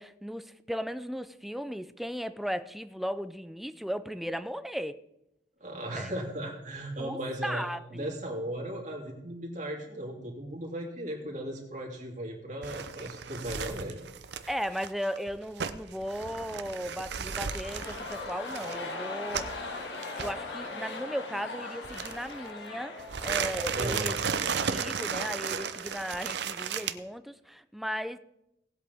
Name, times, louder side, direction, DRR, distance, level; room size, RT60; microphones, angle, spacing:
voice 1, 0.0-5.0 6.0-6.1 7.0-8.1 14.5-19.7 20.2-28.2, equal, ahead, 0.4 m, -36 dB
voice 2, 5.6-14.0 23.7-24.2, right 1 dB, 45° right, 2.9 m, -37 dB
sound 1, 12.6-19.6 20.0-20.3 21.8-22.5 23.0-26.9, right 6 dB, 70° right, 0.7 m, -34 dB
sound 2, 17.2-25.3 25.6-25.7, left 3 dB, 85° left, 1.8 m, -40 dB
18.5 x 8.1 x 3.5 m
head